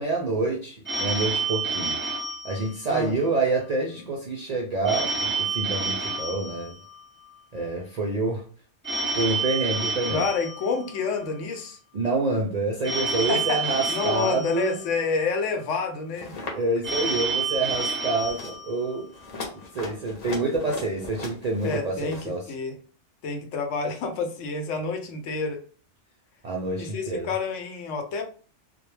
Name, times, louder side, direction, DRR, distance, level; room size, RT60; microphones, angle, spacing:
voice 1, 0.0-2.0 2.4-6.8 7.5-8.4 9.1-10.3 11.9-14.8 16.5-19.1 19.5-22.4 26.4-27.3, right 3 dB, 65° right, 0.4 m, -27 dB
Telephone, 0.8-3.3 4.8-7.3 8.8-11.3 12.8-15.3 16.8-19.3, right 4 dB, 15° right, 0.6 m, -29 dB
voice 2, 10.1-11.8 13.3-16.4 21.6-22.8 23.2-25.6 26.8-28.2, left 4 dB, 80° left, 0.9 m, -29 dB
sound 1, 16.1-16.5 16.8-17.2 17.5-17.9 18.2-18.6 19.1-22.3, left 3 dB, 45° left, 0.6 m, -39 dB
2.2 x 2.1 x 3.1 m
omnidirectional pair, 1.2 m